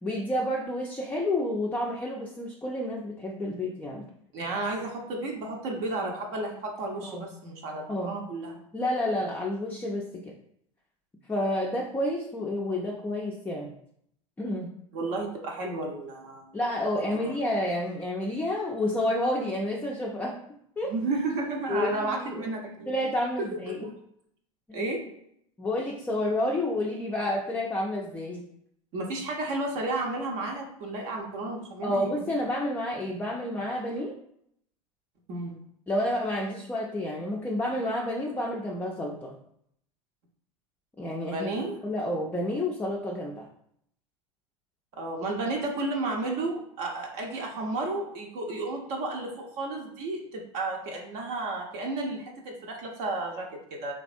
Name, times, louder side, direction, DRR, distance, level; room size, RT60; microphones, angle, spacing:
voice 1, 0.0-4.1 7.1-7.3 7.9-8.2 8.7-10.3 11.3-13.7 14.4-14.8 16.5-20.4 20.8-20.9 21.7-22.4 22.9-23.9 24.7-24.9 25.6-28.5 31.8-34.1 35.9-39.3 41.0-41.6 41.8-43.5, left 1 dB, 10° left, -2 dB, 0.4 m, -30 dB
voice 2, 4.3-8.7 14.9-16.5 17.2-17.4 20.9-22.9 23.7-23.9 24.7-25.1 28.9-32.4 35.3-35.5 41.3-41.8 45.0-53.9, right 2 dB, 50° right, 1 dB, 0.6 m, -32 dB
3.3 x 2.2 x 2.5 m, 0.70 s
figure-of-eight pair, 75°, 17 cm